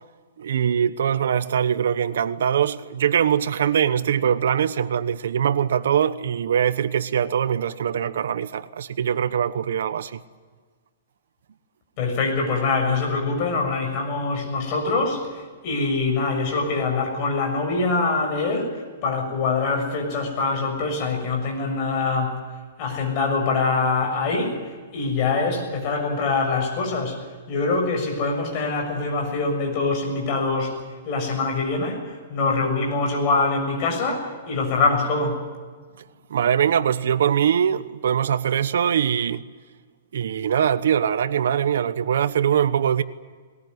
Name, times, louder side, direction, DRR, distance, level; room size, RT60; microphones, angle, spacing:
voice 1, 0.4-10.2 36.3-39.4 40.1-43.0, right 8 dB, 70° right, 1.0 m, -22 dB
voice 2, 12.0-22.4 22.8-24.6 24.9-30.8 31.0-35.4, left 3 dB, 30° left, 6.8 m, -24 dB
21.0 x 20.0 x 9.5 m
hypercardioid pair, 165°, 0 cm